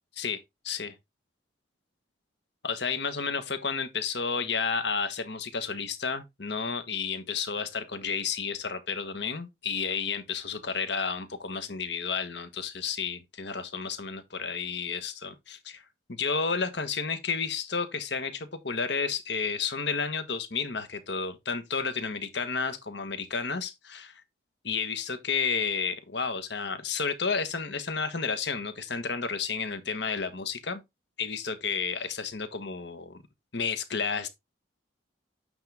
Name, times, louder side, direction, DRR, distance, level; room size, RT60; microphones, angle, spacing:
voice 1, 2.6-15.8 16.1-24.2 24.6-30.8 31.2-33.2 33.5-34.3, left 5 dB, 60° left, 1.4 m, -31 dB
8.8 x 3.7 x 3.5 m
head